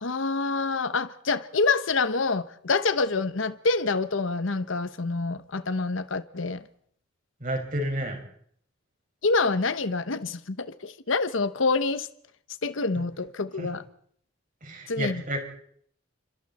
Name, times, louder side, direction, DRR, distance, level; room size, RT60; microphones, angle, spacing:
voice 1, 0.0-6.6 9.2-12.1 12.6-13.8 14.9-15.2, left 3 dB, 75° left, 1.0 m, -26 dB
voice 2, 7.4-8.2 13.6-13.7 14.6-15.4, right 1 dB, 40° right, 5.7 m, -30 dB
29.0 x 26.0 x 4.3 m
head